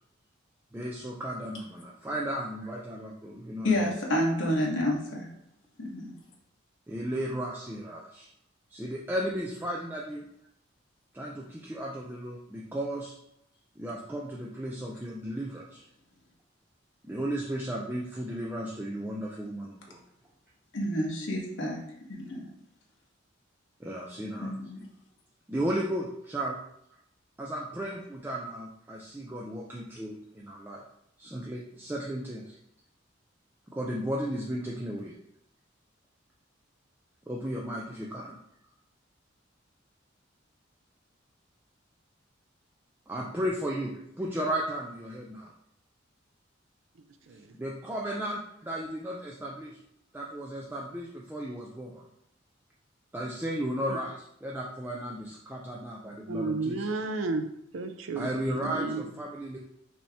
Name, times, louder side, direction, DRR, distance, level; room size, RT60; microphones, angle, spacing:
voice 1, 0.7-3.9 6.9-8.3 8.7-10.2 11.1-13.1 13.8-15.8 17.0-20.0 23.8-24.5 25.5-26.6 27.4-30.8 31.2-32.6 33.7-35.1 37.3-38.4 43.1-45.5 47.5-49.8 50.1-52.0 53.1-56.8 58.2-59.6, right 1 dB, 10° right, -3 dB, 0.4 m, -34 dB
voice 2, 3.6-5.3 5.8-6.1 20.7-21.8 22.1-22.5 24.4-24.8, left 1 dB, 70° left, -1 dB, 1.1 m, -29 dB
voice 3, 56.3-58.3 58.6-59.1, right 3 dB, 75° right, 8 dB, 0.5 m, -32 dB
5.5 x 2.8 x 3.4 m, 0.75 s
head